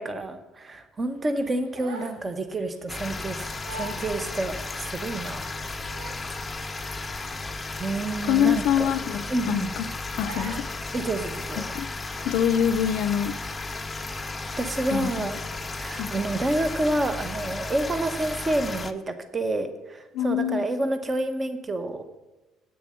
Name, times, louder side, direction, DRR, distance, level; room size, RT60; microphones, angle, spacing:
voice 1, 0.0-5.5 7.8-8.9 9.3-9.7 10.9-11.6 14.6-15.4 15.7-22.1, right 2 dB, 20° right, 9 dB, 0.9 m, -29 dB
Crying sobbing, 1.4-2.3 2.6-2.8 3.3-3.4 3.6-4.1 4.6-4.7 5.5-6.3 6.6-6.9 7.2-7.3 7.7-7.9 8.7-9.2 9.6-9.8 10.2-10.8, right 2 dB, 85° right, 1.6 m, -41 dB
sound 1, 2.9-18.9, left 3 dB, 15° left, 0.6 m, -34 dB
voice 2, 8.3-9.9 10.2-10.6 11.6-11.9 12.2-13.3 14.9-15.3 15.9-16.1 20.1-20.7, left 9 dB, 65° left, 12 dB, 0.5 m, -25 dB
8.6 x 6.9 x 7.5 m, 1.1 s
cardioid pair, 140°, 0 cm